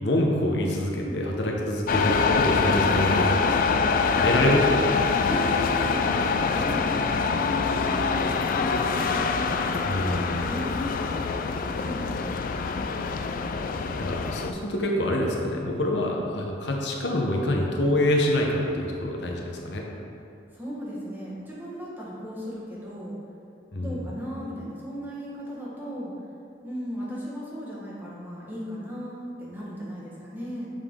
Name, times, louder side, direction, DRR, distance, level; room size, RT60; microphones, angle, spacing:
voice 1, 0.0-3.3 3.9-4.9 9.8-10.5 14.0-19.8 23.7-24.0, left 1 dB, 75° left, -1 dB, 0.9 m, -26 dB
sound 1, 1.9-14.5, left 5 dB, 50° left, 0.3 m, -25 dB
voice 2, 5.3-6.0 6.5-8.2 8.6-10.1 10.4-10.9 11.8-12.3 20.5-23.2 23.8-26.1 26.6-30.7, equal, 10° right, -7 dB, 1.4 m, -36 dB
6.7 x 5.5 x 3.7 m, 2.6 s
head